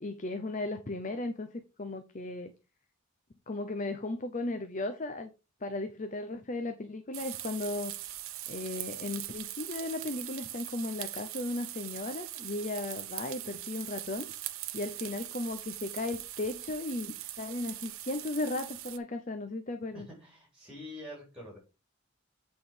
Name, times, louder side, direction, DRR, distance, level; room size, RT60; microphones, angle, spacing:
voice 1, 0.0-2.5 3.5-5.3 5.6-7.9 8.5-14.3 14.7-20.1, left 2 dB, 40° left, 0.7 m, -36 dB
sound 1, 7.1-19.0, right 14 dB, 85° right, 0.8 m, -41 dB
voice 2, 19.9-21.6, left 1 dB, 5° right, 3.8 m, -46 dB
8.0 x 4.4 x 5.1 m
head